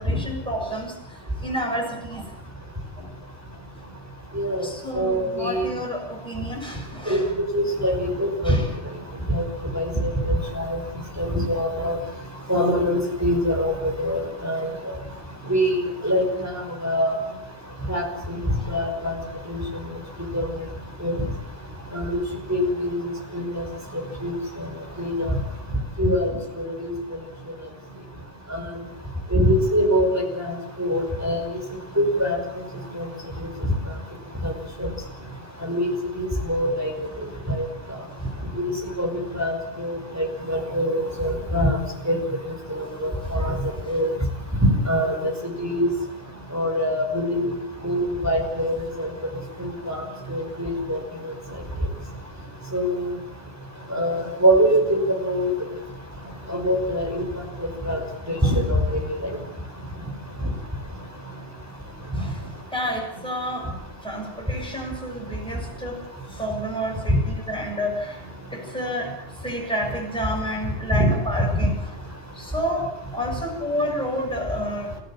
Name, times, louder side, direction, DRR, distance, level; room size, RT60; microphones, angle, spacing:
voice 1, 0.0-2.3 3.0-3.1 3.7-3.9 4.6-7.3 8.4-8.7 18.6-18.8 43.8-44.0 58.4-58.6 62.1-62.5 62.7-63.7 64.0-66.0 66.3-68.2 68.5-69.2 69.4-72.0 72.3-74.9, equal, 5° left, -1 dB, 7.5 m, -30 dB
voice 2, 5.0-5.6 7.1-7.2 7.5-8.6 9.3-9.4 9.7-10.8 11.2-12.0 12.5-14.7 15.5-15.8 16.0-16.5 16.8-17.1 17.9-18.1 18.7-19.1 19.5-19.6 20.3-20.5 21.0-21.1 21.9-22.2 22.5-23.0 23.3-23.6 24.2-24.3 25.0-25.4 26.0-26.3 26.6-26.9 28.5-28.6 29.3-31.4 32.2-32.4 33.0-33.1 34.4-34.5 34.8-34.9 35.6-35.9 36.2-36.9 37.6-37.7 38.6-38.7 39.0-39.1 39.3-39.5 39.8-41.8 42.1-42.2 42.7-43.6 43.9-44.1 44.9-45.3 45.6-45.9 46.5-47.5 47.8-49.1 49.6-50.0 50.3-51.0 52.7-53.0 53.9-55.5 56.5-57.2 57.9-58.0 58.4-59.3 67.1-67.2 70.9-71.1, equal, 15° right, 2 dB, 5.4 m, -23 dB
28.0 x 15.5 x 8.7 m, 0.81 s
omnidirectional pair, 1.1 m